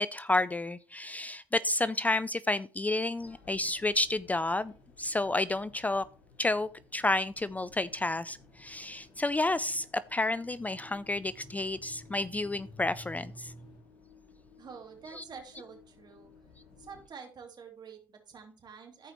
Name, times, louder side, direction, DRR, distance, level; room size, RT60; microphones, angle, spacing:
voice 1, 0.0-4.7 5.0-6.0 6.4-9.9 10.1-13.5 15.2-15.3, left 2 dB, 15° left, 0.4 m, -30 dB
sound 1, 3.1-17.1, left 5 dB, 85° left, 3.7 m, -58 dB
sound 2, 6.9-13.8, equal, 50° left, 3.4 m, -53 dB
voice 2, 14.6-16.3 16.8-19.1, right 6 dB, 45° right, 2.9 m, -48 dB
14.5 x 4.9 x 3.0 m
hypercardioid pair, 65°, 10 cm